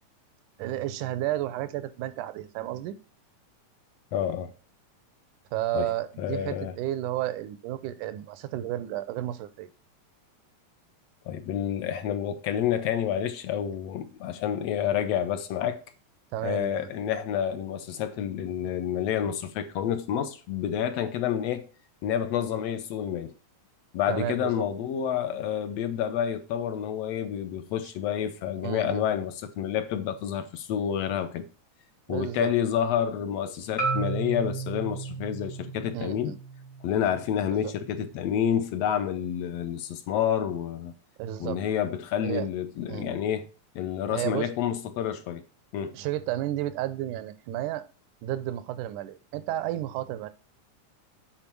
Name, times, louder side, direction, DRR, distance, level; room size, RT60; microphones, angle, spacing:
voice 1, 0.6-3.0 5.5-9.7 16.3-16.9 24.1-24.5 28.6-29.0 32.1-32.5 35.9-36.4 37.5-37.7 41.2-41.6 42.2-42.5 42.9-43.1 44.1-44.5 45.9-47.8 48.2-50.3, right 13 dB, 90° right, 2.2 m, -32 dB
voice 2, 4.1-4.5 5.7-5.9 6.2-6.8 11.3-15.8 16.4-21.6 22.0-23.3 23.9-31.5 32.1-36.3 36.8-40.9 41.4-43.4 43.8-45.4 45.7-46.0, left 9 dB, 70° left, 1.7 m, -29 dB
Marimba xylophone, 33.8-37.9, right 4 dB, 35° left, 0.5 m, -34 dB
9.0 x 4.4 x 6.0 m
omnidirectional pair, 3.5 m